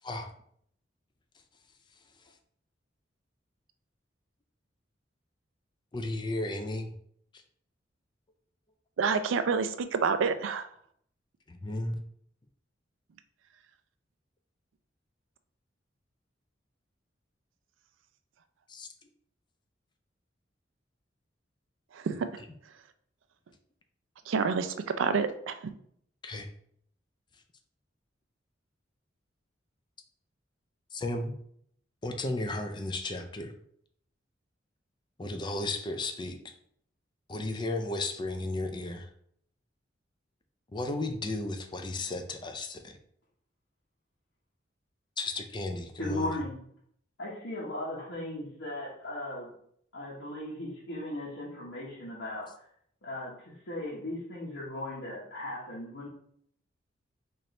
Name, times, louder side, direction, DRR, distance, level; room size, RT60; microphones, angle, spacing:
voice 1, 5.9-6.9 11.5-12.0 18.7-18.9 22.4-22.5 26.2-26.5 30.9-31.3 32.0-33.5 35.2-36.4 37.3-39.1 40.7-42.9 45.2-46.4, left 2 dB, 25° left, 5 dB, 0.4 m, -34 dB
voice 2, 9.0-10.7 21.9-22.3 24.3-25.5, right 5 dB, 90° right, 10 dB, 0.4 m, -28 dB
voice 3, 46.0-46.6 47.2-49.5 49.9-52.5 53.0-56.1, left 1 dB, 90° left, -8 dB, 1.1 m, -37 dB
4.3 x 2.6 x 3.2 m, 0.67 s
head